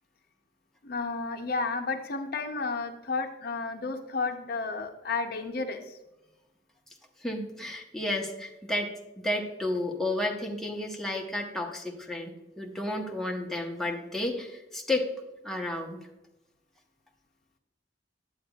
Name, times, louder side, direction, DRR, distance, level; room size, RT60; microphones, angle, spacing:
voice 1, 0.8-6.0, left 4 dB, 55° left, 6 dB, 0.6 m, -32 dB
voice 2, 7.2-15.1 15.4-16.1, left 1 dB, ahead, 0 dB, 0.8 m, -32 dB
9.7 x 7.9 x 2.3 m, 0.99 s
head